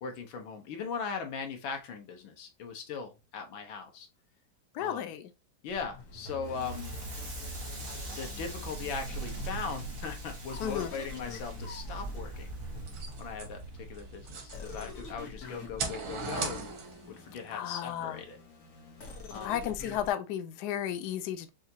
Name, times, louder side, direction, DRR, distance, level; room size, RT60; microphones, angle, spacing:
voice 1, 0.0-4.1 4.8-5.1 5.6-6.9 8.1-12.5 13.2-16.7 17.1-18.4 19.3-19.6, left 5 dB, 85° left, 1.7 m, -39 dB
voice 2, 4.7-5.3 10.6-10.9 17.5-18.2 19.4-21.5, left 10 dB, 70° left, 1.0 m, -33 dB
sound 1, 5.7-9.4 10.5-13.6 14.5-20.1, left 2 dB, 50° left, 1.3 m, -45 dB
Crackle, 6.4-15.4, right 2 dB, 45° right, 1.8 m, -42 dB
sound 2, 12.8-15.1 15.5-17.2, right 4 dB, 85° right, 1.9 m, -38 dB
5.5 x 2.5 x 2.8 m
omnidirectional pair, 2.1 m